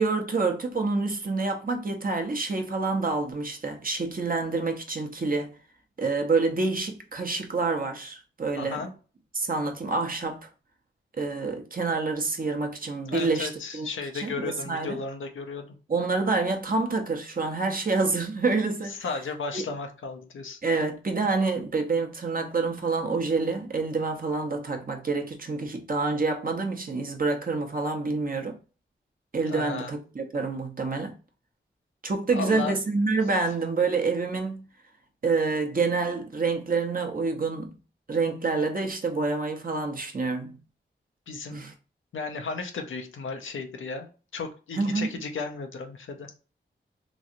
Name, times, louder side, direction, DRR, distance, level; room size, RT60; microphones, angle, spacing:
voice 1, 0.0-5.5 6.0-8.8 9.3-10.5 11.2-13.9 14.1-15.0 15.9-19.0 19.5-19.6 20.6-28.6 29.3-31.1 32.0-34.6 35.2-37.7 38.1-40.6 41.5-41.7 44.8-45.1, right 3 dB, 45° right, 0.8 m, -27 dB
voice 2, 8.6-8.9 13.1-15.7 18.9-20.6 29.5-29.9 32.3-32.8 41.3-41.6 42.1-46.3, left 4 dB, 85° left, 0.6 m, -34 dB
3.1 x 2.7 x 2.5 m
cardioid pair, 40°, 20 cm